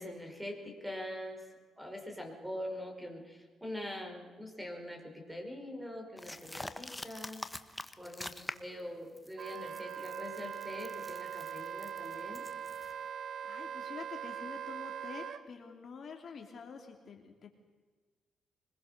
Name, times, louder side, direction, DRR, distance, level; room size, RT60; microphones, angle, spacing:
voice 1, 0.0-1.5 1.8-7.4 8.0-12.4, left 1 dB, 5° right, 3 dB, 5.2 m, -43 dB
sound 1, 6.2-8.8 9.2-12.9, left 1 dB, 10° left, 1.2 m, -45 dB
Wind instrument woodwind instrument, 9.4-15.4, right 8 dB, 60° right, 1.3 m, -41 dB
voice 2, 12.7-13.1 13.4-17.5, left 5 dB, 50° left, 3 dB, 2.9 m, -48 dB
24.5 x 21.0 x 6.7 m, 1.4 s
cardioid pair, 90°, 0 cm